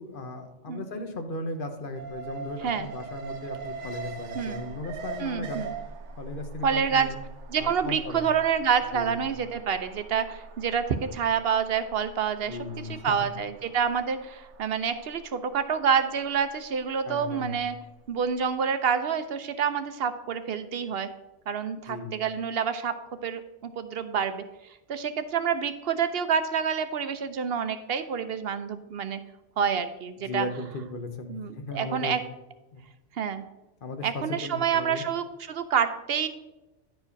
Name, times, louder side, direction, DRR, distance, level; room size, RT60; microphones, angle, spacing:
voice 1, 0.0-5.6 6.2-7.2 7.5-8.3 8.9-9.2 12.4-13.3 17.0-17.6 21.9-22.2 30.2-32.2 32.7-32.9 33.8-35.0, left 2 dB, 50° left, 6 dB, 1.1 m, -36 dB
Alarm, 2.0-18.1 18.4-18.5, right 4 dB, 80° right, 1.1 m, -42 dB
voice 2, 5.2-5.7 6.6-7.1 7.5-12.6 12.9-17.7 18.1-21.1 21.5-22.9 23.2-24.4 24.9-29.2 29.6-30.5 31.3-32.2 33.2-33.4 34.0-36.3, right 7 dB, 60° right, 10 dB, 0.8 m, -28 dB
10.5 x 4.9 x 5.1 m, 1.0 s
omnidirectional pair, 1.2 m